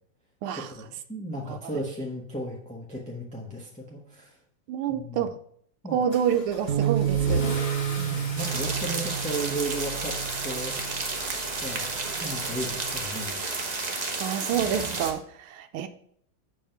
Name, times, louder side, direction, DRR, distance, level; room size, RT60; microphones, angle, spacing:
voice 1, 0.7-4.4 4.9-5.3 5.8-6.1 8.0-10.1 10.4-10.8 11.6-13.4, right 1 dB, 5° left, -3 dB, 0.9 m, -35 dB
voice 2, 4.7-5.3 5.9-7.4 14.2-15.9, right 8 dB, 90° right, 8 dB, 1.5 m, -28 dB
Car / Engine starting / Accelerating revving vroom, 6.1-13.5, left 1 dB, 30° left, 1.7 m, -38 dB
Bass guitar, 6.7-11.1 11.8-12.9, right 10 dB, 55° right, 1.3 m, -31 dB
sound 1, 8.4-15.1, right 3 dB, 35° right, 0.7 m, -32 dB
7.2 x 5.3 x 5.7 m, 0.65 s
omnidirectional pair, 2.3 m